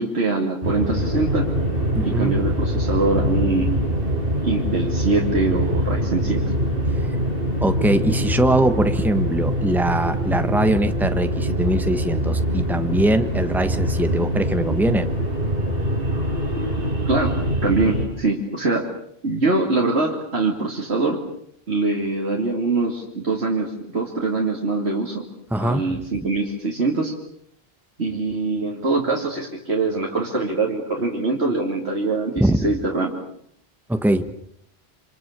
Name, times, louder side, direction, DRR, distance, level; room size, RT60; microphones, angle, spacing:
voice 1, 0.0-1.5 2.0-3.7 4.4-6.4 17.1-17.3 17.6-18.9 19.2-21.2 21.7-25.2 25.6-27.2 28.0-33.1, right 3 dB, 85° right, -1 dB, 3.0 m, -23 dB
sound 1, 0.6-18.1, equal, 60° right, 5.9 m, -23 dB
voice 2, 1.9-2.4 7.6-15.1 25.5-26.0 32.4-32.6 33.9-34.3, right 1 dB, ahead, 9 dB, 1.3 m, -21 dB
27.0 x 26.5 x 6.8 m, 0.69 s
omnidirectional pair, 1.1 m